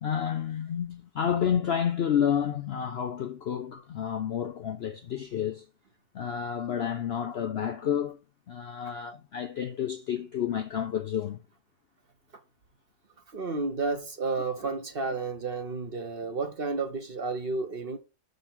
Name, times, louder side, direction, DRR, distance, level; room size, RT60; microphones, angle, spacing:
voice 1, 0.0-5.6 6.1-8.2 8.5-11.4, left 8 dB, 60° left, 0.6 m, -30 dB
voice 2, 13.3-18.0, right 3 dB, 45° right, 1.0 m, -31 dB
6.6 x 4.0 x 5.9 m
omnidirectional pair, 1.6 m